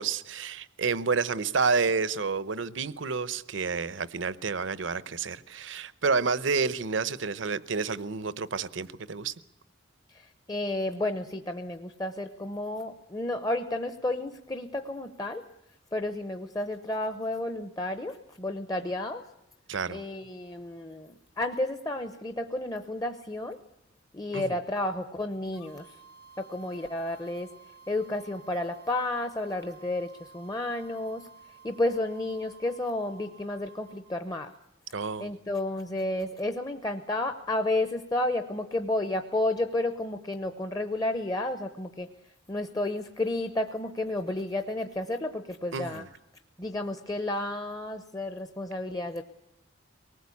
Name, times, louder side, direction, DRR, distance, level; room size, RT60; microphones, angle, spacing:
voice 1, 0.0-9.3 19.7-20.0 24.3-24.6 34.9-35.3 45.7-46.1, right 4 dB, 70° right, 0.8 m, -29 dB
voice 2, 10.1-15.4 15.9-19.2 19.9-23.6 24.1-26.0 26.4-27.5 27.9-31.3 31.6-34.5 35.2-42.1 42.5-46.0 46.6-49.2, left 1 dB, 20° left, 0.8 m, -31 dB
sound 1, 25.5-34.2, right 5 dB, 55° left, 1.9 m, -53 dB
24.0 x 19.0 x 8.4 m
head